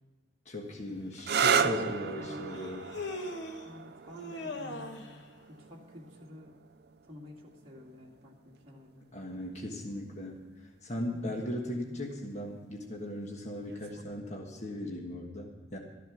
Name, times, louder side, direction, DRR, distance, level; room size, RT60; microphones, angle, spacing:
voice 1, 0.4-2.9 9.1-10.5 10.8-15.8, left 1 dB, 35° left, 0 dB, 1.4 m, -38 dB
Human voice, 1.1-1.2 2.5-3.7 4.2-5.2, left 2 dB, 60° left, 1.3 m, -40 dB
sound 1, 1.2-8.6 9.6-10.1 13.7-14.0, right 6 dB, 50° right, 0.5 m, -34 dB
voice 2, 1.6-2.6 3.6-6.5 7.1-9.1 11.1-11.4, left 1 dB, 30° right, -3 dB, 2.1 m, -49 dB
13.5 x 10.5 x 6.1 m, 1.4 s
head